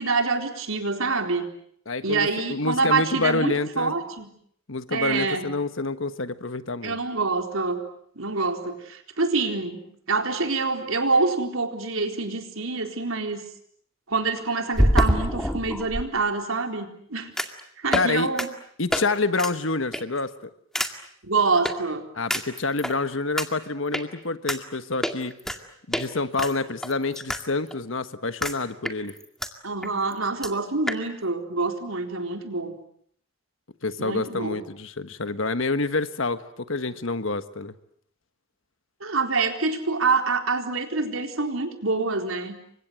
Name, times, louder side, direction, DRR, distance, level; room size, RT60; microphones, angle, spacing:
voice 1, 0.0-1.5 2.0-4.3 4.9-5.5 6.8-7.8 8.2-13.4 14.1-17.3 17.8-18.5 21.2-22.0 29.6-32.8 34.0-34.6 39.0-42.6, right 3 dB, 80° right, 4 dB, 4.1 m, -26 dB
voice 2, 1.9-3.9 4.7-7.0 17.9-18.3 18.8-20.5 22.1-25.3 25.9-29.1 33.8-37.7, left 3 dB, 70° left, 11 dB, 1.5 m, -27 dB
sound 1, 12.3-12.4 14.7-16.0 17.4-17.6 17.9-18.1 18.4-18.5 18.9-19.0 19.4-19.5 19.9-20.2 20.7-20.9 21.6-21.7 22.3-22.9 23.4-23.5 23.9-24.0 24.5-24.6 25.0-25.6 25.9-26.1 26.4-27.4 27.7-27.8 28.4-28.6 28.8-29.5 29.8-29.9 30.1-30.2 30.4-30.5 30.9-31.0, equal, ahead, 2.0 m, -25 dB
29.5 x 25.0 x 7.7 m, 0.66 s
head